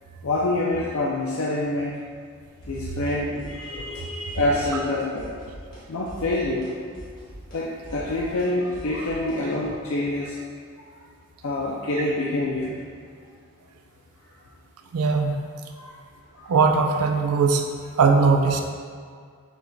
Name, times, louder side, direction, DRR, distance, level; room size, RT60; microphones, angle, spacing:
voice 1, 0.2-2.0 2.7-5.3 5.9-6.6 7.5-10.4 11.4-12.8 15.8-15.9 16.4-16.5, left 2 dB, 70° left, -5 dB, 0.5 m, -26 dB
sound 1, 2.6-3.1 3.4-4.0 4.3-4.9 5.2-5.8 6.1-9.7, equal, 40° left, 1.2 m, -42 dB
voice 2, 14.9-15.3 16.5-17.6 18.0-18.6, right 4 dB, 90° right, 4 dB, 0.5 m, -19 dB
5.9 x 3.8 x 2.2 m, 2.1 s
head